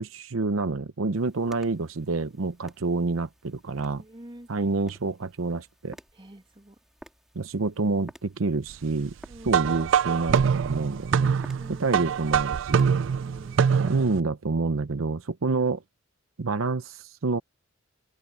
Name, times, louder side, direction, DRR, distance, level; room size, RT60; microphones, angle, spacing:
voice 1, 0.0-4.0 4.5-6.0 7.3-9.2 9.4-11.4 11.7-12.9 13.8-15.8 16.4-17.4, right 3 dB, 85° right, 0.7 m, -28 dB
sound 1, 1.1-13.9, equal, ahead, 2.9 m, -54 dB
voice 2, 4.0-4.5 6.1-6.8 9.3-9.7 11.6-12.2 13.2-13.7, right 1 dB, 25° right, 2.0 m, -47 dB
sound 2, 9.5-14.2, right 7 dB, 65° right, 0.4 m, -24 dB
open air
head